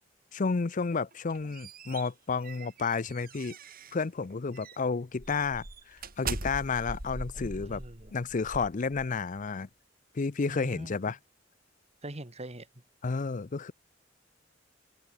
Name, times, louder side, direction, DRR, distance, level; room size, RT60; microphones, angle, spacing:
voice 1, 0.3-3.6 3.9-7.8 8.1-9.7 10.1-11.2 13.0-13.7, left 4 dB, 40° left, 0.5 m, -31 dB
sound 1, 1.1-4.1 4.5-4.8 5.2-9.4, right 3 dB, 50° right, 4.5 m, -41 dB
voice 2, 7.3-8.2 10.5-11.0 12.0-12.7, right 1 dB, 35° right, 2.8 m, -43 dB
open air
head